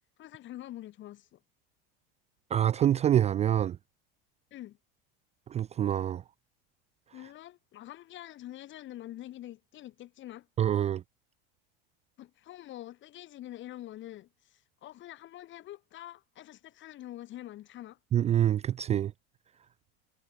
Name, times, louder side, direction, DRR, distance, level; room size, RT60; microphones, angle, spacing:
voice 1, 0.2-1.4 4.5-4.8 7.1-10.5 12.2-18.0, left 14 dB, 40° left, 5.0 m, -45 dB
voice 2, 2.5-3.8 5.5-6.2 10.6-11.0 18.1-19.1, right 10 dB, 20° right, 0.5 m, -26 dB
supercardioid pair, 140°, 29 cm